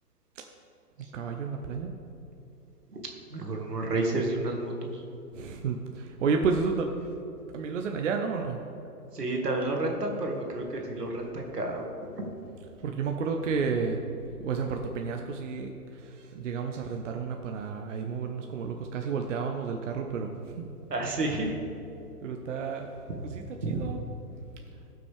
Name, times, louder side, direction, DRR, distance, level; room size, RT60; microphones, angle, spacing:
voice 1, 1.1-1.9 5.3-6.9 7.5-8.6 12.8-14.0 14.4-20.7 22.2-22.9 23.2-24.0, right 5 dB, 50° right, 3 dB, 0.8 m, -31 dB
voice 2, 3.3-5.0 9.1-11.8 12.1-12.3 20.9-21.5 23.6-23.8, right 2 dB, 85° right, 1 dB, 2.1 m, -30 dB
17.0 x 6.1 x 3.5 m, 2.9 s
hypercardioid pair, 135°, 47 cm